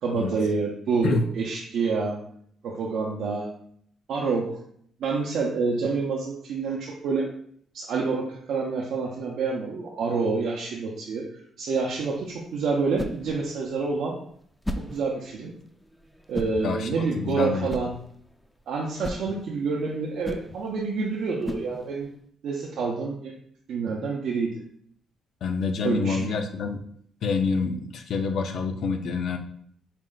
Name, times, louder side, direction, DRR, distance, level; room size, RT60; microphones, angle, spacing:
voice 1, 0.0-2.2 2.6-3.5 4.1-4.6 5.0-7.3 7.7-14.2 14.8-15.5 16.3-17.9 18.7-22.1 22.4-23.3 23.7-24.6 25.8-26.4, right 4 dB, 70° right, -2 dB, 0.5 m, -28 dB
sound 1, 11.7-22.2, equal, 5° left, 0.4 m, -39 dB
voice 2, 17.2-17.7 25.4-26.8 27.2-29.4, left 4 dB, 65° left, 6 dB, 0.5 m, -27 dB
4.3 x 2.1 x 3.7 m, 0.63 s
cardioid pair, 90°, 0 cm